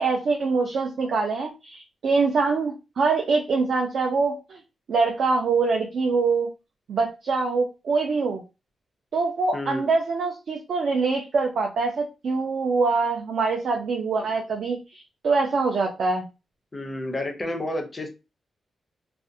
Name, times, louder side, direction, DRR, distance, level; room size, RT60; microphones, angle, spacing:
voice 1, 0.0-4.6 4.9-6.5 6.9-8.4 9.1-16.3, right 4 dB, 60° right, 1 dB, 0.4 m, -24 dB
voice 2, 9.5-9.9 14.2-14.3 16.7-18.1, left 1 dB, 20° left, 4 dB, 0.4 m, -31 dB
2.4 x 2.1 x 2.6 m, 0.28 s
wide cardioid pair, 175°, 0 cm